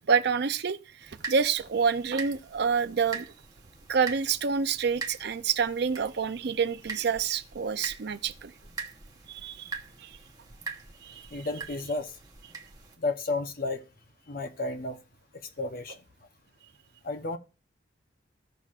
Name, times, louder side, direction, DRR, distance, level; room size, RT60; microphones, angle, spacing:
voice 1, 0.1-3.3 3.9-8.5 9.3-9.7 10.0-10.2 11.0-11.3, right 6 dB, 60° right, 0.5 m, -28 dB
sound 1, 1.0-13.0, right 4 dB, 20° right, 0.9 m, -43 dB
voice 2, 11.3-12.1 13.0-13.8 14.3-15.0 15.6-16.0 17.0-17.4, left 3 dB, 50° left, 0.8 m, -32 dB
15.5 x 5.9 x 2.5 m
head